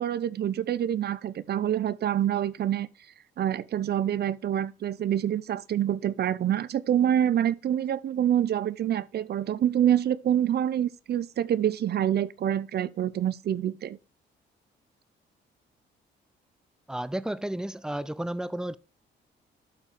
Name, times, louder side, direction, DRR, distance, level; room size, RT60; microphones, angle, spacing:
voice 1, 0.0-2.9 3.4-14.0, right 10 dB, 55° right, 0.6 m, -26 dB
voice 2, 16.9-18.8, right 1 dB, 5° right, 0.5 m, -32 dB
12.0 x 4.3 x 3.6 m
cardioid pair, 90°, 20 cm